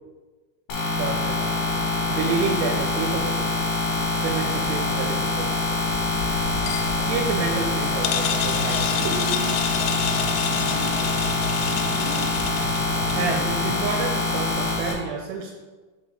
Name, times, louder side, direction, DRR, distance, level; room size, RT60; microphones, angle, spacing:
sound 1, 0.7-14.9, left 3 dB, 60° left, 2.4 m, -25 dB
voice 1, 0.8-3.6 4.1-5.6 6.9-9.2 13.1-15.5, right 5 dB, 80° right, 1 dB, 3.2 m, -29 dB
sound 2, 5.9-13.4, left 9 dB, 85° left, 3.1 m, -30 dB
sound 3, 8.4-13.9, right 1 dB, 40° right, 2.2 m, -33 dB
6.8 x 4.3 x 5.1 m, 1.3 s
omnidirectional pair, 5.7 m